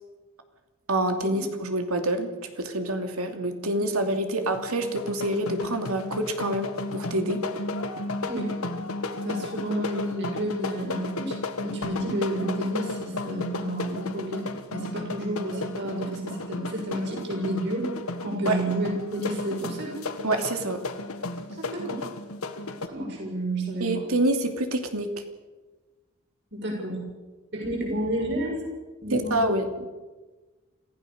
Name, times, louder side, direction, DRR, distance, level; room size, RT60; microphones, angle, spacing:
voice 1, 0.9-7.4 18.5-18.6 20.2-20.8 23.8-25.1 29.1-29.9, right 1 dB, 85° right, 6 dB, 2.7 m, -27 dB
sound 1, 4.4-22.9, left 2 dB, 80° left, 1.7 m, -34 dB
voice 2, 9.2-11.4 11.6-14.4 14.7-17.9 18.2-19.9 21.5-22.1 22.9-24.0 26.5-27.0 27.5-28.6 29.0-29.5, right 1 dB, 55° right, -1 dB, 7.4 m, -30 dB
27.0 x 15.5 x 6.8 m, 1.2 s
head